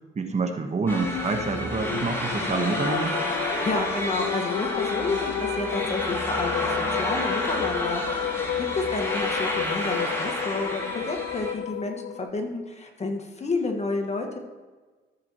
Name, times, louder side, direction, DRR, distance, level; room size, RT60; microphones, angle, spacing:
voice 1, 0.1-3.2, right 4 dB, 35° right, 5 dB, 1.2 m, -27 dB
sound 1, 0.9-12.3, left 11 dB, 55° left, 0.4 m, -32 dB
sound 2, 0.9-11.5, left 1 dB, 15° left, 2.5 m, -30 dB
voice 2, 3.5-8.4 8.7-14.4, left 3 dB, 35° left, 4 dB, 1.6 m, -30 dB
14.0 x 7.0 x 3.0 m, 1.3 s
cardioid pair, 90°, 20 cm